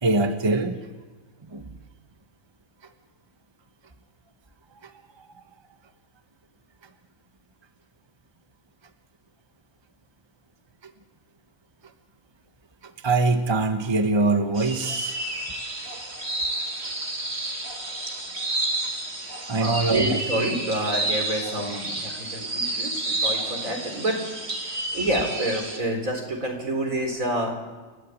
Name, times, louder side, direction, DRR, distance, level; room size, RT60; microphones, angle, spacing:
voice 1, 0.0-0.7 1.5-1.8 4.8-4.9 5.2-5.3 10.8-10.9 13.0-15.4 19.5-20.2, right 3 dB, 20° right, 7 dB, 1.1 m, -23 dB
sound 1, 14.6-25.8, right 2 dB, 50° right, 2.9 m, -30 dB
voice 2, 19.6-24.2 24.6-27.6, right 1 dB, 70° right, 2 dB, 4.4 m, -28 dB
29.0 x 12.5 x 8.4 m, 1.3 s
omnidirectional pair, 1.5 m